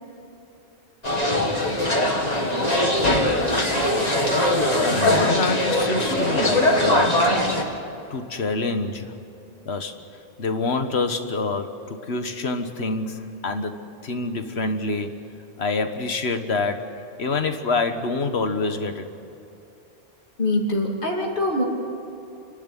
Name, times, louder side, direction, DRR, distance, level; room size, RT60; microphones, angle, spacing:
sound 1, 1.0-7.6, left 1 dB, 40° left, 2.5 m, -21 dB
voice 1, 4.8-7.2 8.1-9.1 9.7-9.9 10.4-15.1 15.6-16.9 17.2-19.1, left 3 dB, 80° left, 7 dB, 1.7 m, -26 dB
voice 2, 20.4-21.6, left 1 dB, 55° left, -2 dB, 3.1 m, -23 dB
29.5 x 11.5 x 10.0 m, 2.8 s
omnidirectional pair, 1.1 m